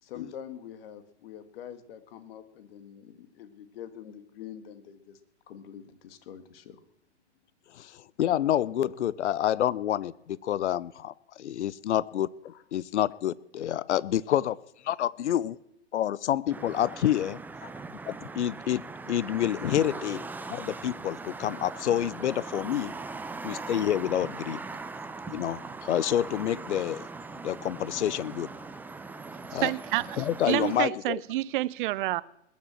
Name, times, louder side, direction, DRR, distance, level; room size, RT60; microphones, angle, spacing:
voice 1, 0.0-5.2 5.5-6.8 12.5-12.6 17.6-17.9 20.4-20.5 29.6-29.7, left 9 dB, 55° left, 2.0 m, -45 dB
voice 2, 7.7-14.6 14.8-15.6 15.9-17.4 18.1-18.8 19.1-20.2 20.5-22.9 23.4-24.6 25.3-27.0 27.4-28.5 29.5-29.7 30.2-31.2, left 11 dB, 75° left, 0.6 m, -28 dB
sound 1, 16.5-30.8, right 3 dB, 5° right, 0.6 m, -40 dB
voice 3, 29.3-32.2, right 17 dB, 50° right, 0.7 m, -29 dB
21.0 x 7.3 x 7.6 m
hypercardioid pair, 115°, 34 cm